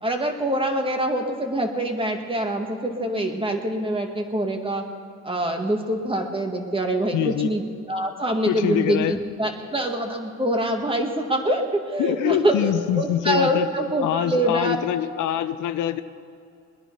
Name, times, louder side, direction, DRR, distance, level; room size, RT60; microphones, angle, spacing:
voice 1, 0.0-4.9 5.2-7.6 7.9-14.8, right 1 dB, 15° right, 3 dB, 1.9 m, -25 dB
voice 2, 7.1-7.5 8.4-9.2 12.0-13.7 14.0-16.0, left 11 dB, 85° left, 11 dB, 0.7 m, -24 dB
21.0 x 10.5 x 5.5 m, 2.4 s
cardioid pair, 90°, 30 cm